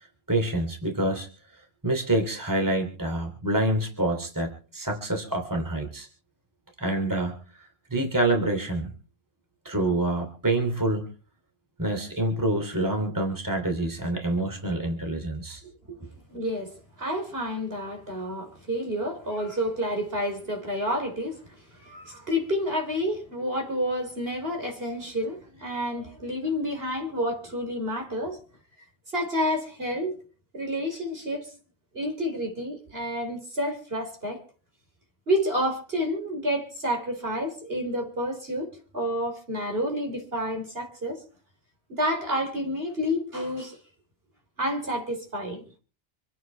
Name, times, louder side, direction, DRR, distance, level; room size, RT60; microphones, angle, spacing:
voice 1, 0.3-1.3 1.8-6.1 6.8-7.4 7.9-8.9 9.6-11.1 11.8-15.6, right 1 dB, 15° right, 3.0 m, -26 dB
voice 2, 16.3-16.7 17.0-21.4 21.7-28.4 29.1-30.2 30.5-31.5 31.9-34.4 35.3-41.2 42.0-43.8 44.6-45.6, equal, 55° right, 4.3 m, -29 dB
26.5 x 9.2 x 4.5 m
omnidirectional pair, 1.2 m